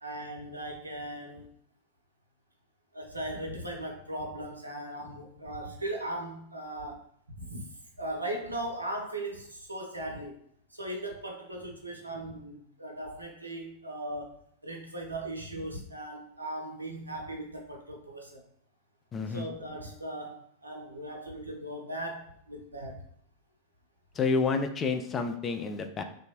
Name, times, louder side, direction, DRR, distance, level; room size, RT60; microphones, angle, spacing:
voice 1, 0.0-1.4 2.9-7.0 7.4-7.7 8.0-10.3 10.7-14.3 14.6-18.4 19.3-23.0, right 1 dB, 85° right, 1 dB, 0.5 m, -38 dB
voice 2, 19.1-19.5 24.2-26.0, left 4 dB, 25° left, 6 dB, 0.3 m, -29 dB
2.7 x 2.2 x 2.9 m, 0.67 s
figure-of-eight pair, 90°, 0 cm